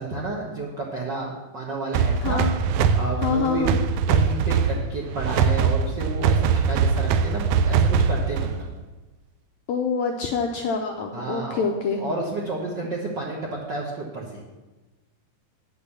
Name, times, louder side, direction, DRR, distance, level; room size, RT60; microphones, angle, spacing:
voice 1, 0.0-2.4 2.9-3.7 4.1-8.7 11.1-11.7 12.0-14.4, right 3 dB, 65° right, -3 dB, 1.1 m, -31 dB
sound 1, 1.9-8.7, right 6 dB, 80° right, 1.8 m, -22 dB
voice 2, 3.2-3.7 9.7-12.0, left 5 dB, 80° left, 3 dB, 1.6 m, -26 dB
8.9 x 6.7 x 7.0 m, 1.2 s
omnidirectional pair, 3.9 m